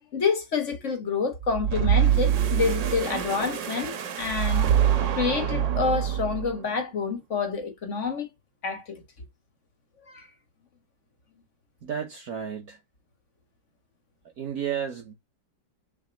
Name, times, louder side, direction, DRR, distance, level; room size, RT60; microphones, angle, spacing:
voice 1, 0.1-4.7 5.2-8.3 8.6-9.0 10.1-10.3, left 5 dB, 45° left, 1.8 m, -28 dB
sound 1, 1.4-6.6, right 10 dB, 80° right, 1.7 m, -25 dB
voice 2, 11.8-12.8 14.4-15.1, right 8 dB, 60° right, 1.4 m, -32 dB
7.4 x 3.4 x 4.1 m
omnidirectional pair, 1.9 m